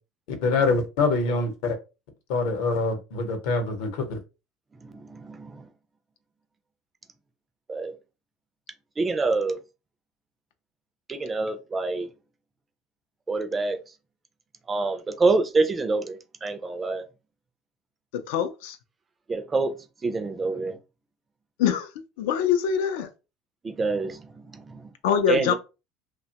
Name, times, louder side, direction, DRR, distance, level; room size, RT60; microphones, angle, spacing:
voice 1, 0.4-1.8 2.3-4.2, left 3 dB, 65° left, 0.8 m, -25 dB
voice 2, 4.8-5.7 7.7-7.9 9.0-9.6 11.1-12.1 13.3-13.8 14.7-17.0 19.3-19.8 20.0-20.8 23.6-24.9 25.3-25.5, right 3 dB, 15° right, 0.3 m, -26 dB
voice 3, 18.1-18.8 21.6-21.9 22.2-23.1 25.0-25.5, left 8 dB, 85° left, 0.4 m, -24 dB
2.7 x 2.1 x 2.8 m
cardioid pair, 170°, 0 cm